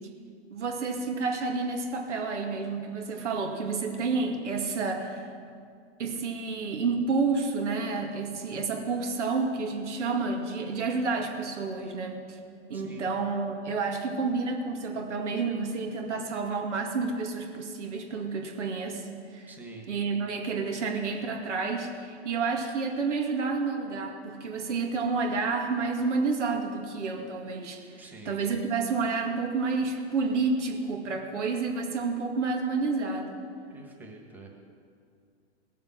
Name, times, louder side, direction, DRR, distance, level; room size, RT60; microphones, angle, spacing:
voice 1, 0.5-5.3 6.0-12.4 12.7-19.6 19.9-33.4, right 4 dB, 80° right, 3 dB, 2.2 m, -30 dB
voice 2, 12.7-13.1 19.5-19.9 28.0-28.4 33.7-34.5, right 2 dB, 5° right, -1 dB, 1.7 m, -46 dB
17.5 x 7.3 x 7.3 m, 2.3 s
hypercardioid pair, 140°, 35 cm